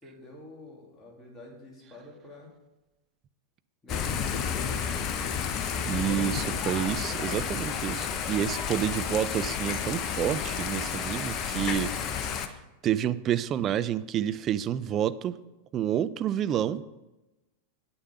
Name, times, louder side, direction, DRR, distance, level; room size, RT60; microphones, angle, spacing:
voice 1, 0.0-2.5 3.8-5.3, left 2 dB, 15° left, -2 dB, 3.0 m, -48 dB
Thunder / Rain, 3.9-12.5, left 7 dB, 35° left, 0.8 m, -31 dB
voice 2, 5.8-11.9 12.2-12.5 12.8-15.4 15.7-16.8, right 10 dB, 30° right, 14 dB, 0.4 m, -29 dB
8.9 x 6.6 x 6.7 m, 1.0 s
figure-of-eight pair, 90°, 0 cm